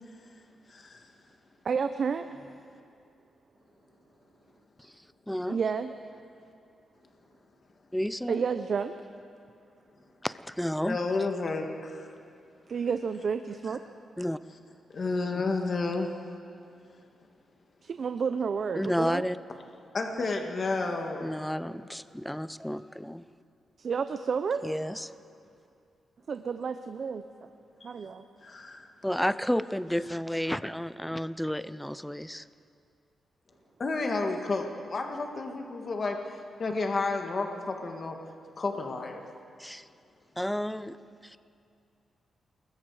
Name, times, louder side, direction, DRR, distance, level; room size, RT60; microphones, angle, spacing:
voice 1, 1.6-2.3 5.5-5.9 8.3-8.9 12.7-13.8 17.8-19.3 23.8-24.6 26.3-27.2 27.8-28.2, right 6 dB, 45° right, 9 dB, 0.7 m, -30 dB
voice 2, 5.3-5.6 7.9-8.4 10.2-11.0 14.2-14.4 18.7-19.4 21.2-23.2 24.6-25.1 29.0-32.5 39.6-39.9 40.4-41.0 41.2-41.4, equal, 5° left, 14 dB, 0.5 m, -31 dB
voice 3, 10.8-12.1 14.9-16.1 19.9-21.4 27.8-28.0 28.4-28.9 33.8-38.2 38.6-39.2, left 3 dB, 35° left, 3 dB, 1.7 m, -31 dB
28.5 x 21.0 x 4.9 m, 2.4 s
wide cardioid pair, 145°, 0 cm